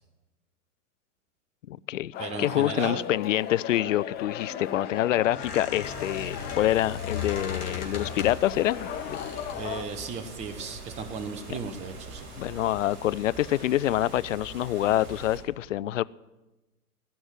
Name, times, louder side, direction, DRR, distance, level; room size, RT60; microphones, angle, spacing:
voice 1, 1.7-9.2 11.5-11.6 12.4-16.0, left 13 dB, 55° left, 19 dB, 0.5 m, -26 dB
sound 1, 2.1-9.8, left 10 dB, 20° left, 0.8 m, -37 dB
voice 2, 2.2-3.0 9.5-12.3, right 5 dB, 15° right, 11 dB, 0.8 m, -36 dB
Squeak, 4.1-8.5 9.1-9.6, left 6 dB, 75° left, 3.5 m, -38 dB
sound 2, 5.8-15.4, right 2 dB, 45° right, 4.4 m, -43 dB
16.5 x 6.3 x 9.8 m, 1.1 s
figure-of-eight pair, 110°, 45 cm